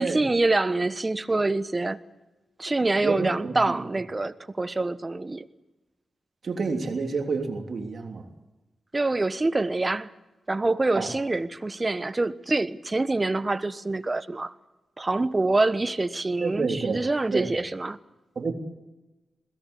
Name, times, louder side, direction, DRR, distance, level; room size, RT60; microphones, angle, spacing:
voice 1, 0.0-2.0 2.6-5.5 8.9-10.1 10.5-14.5 15.0-18.0, right 2 dB, 35° right, 1.1 m, -26 dB
voice 2, 3.0-3.5 6.4-8.2 10.9-11.1 16.4-17.0 17.3-17.5 18.3-18.5, right 4 dB, 65° right, 3.2 m, -28 dB
21.0 x 18.0 x 8.3 m
supercardioid pair, 40°, 0 cm